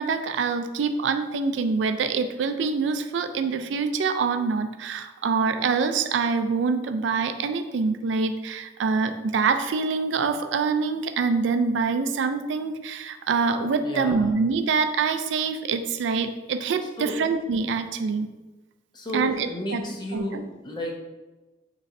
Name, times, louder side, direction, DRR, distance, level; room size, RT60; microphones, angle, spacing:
voice 1, 0.0-18.3 19.1-19.8 20.1-20.4, right 5 dB, 75° right, 8 dB, 0.4 m, -25 dB
voice 2, 13.8-14.3 17.0-17.2 18.9-21.0, equal, 25° left, 0 dB, 0.7 m, -32 dB
6.4 x 3.1 x 2.6 m, 1.1 s
head